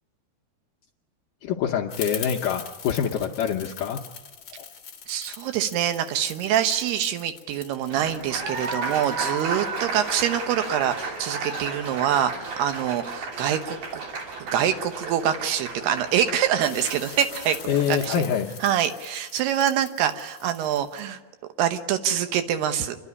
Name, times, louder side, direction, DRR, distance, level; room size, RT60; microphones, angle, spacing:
voice 1, 1.4-4.0 4.6-4.7 17.7-18.5, left 8 dB, 75° left, 1 dB, 2.0 m, -25 dB
sound 1, 1.9-10.9 16.6-21.0, left 7 dB, 55° left, 1.4 m, -42 dB
voice 2, 5.1-14.0 14.5-17.6 17.9-18.2 18.6-21.2 21.6-23.0, right 10 dB, 80° right, 9 dB, 3.0 m, -25 dB
Applause, 7.9-18.3, right 4 dB, 55° right, 4.3 m, -34 dB
28.5 x 11.5 x 9.6 m, 1.2 s
omnidirectional pair, 4.7 m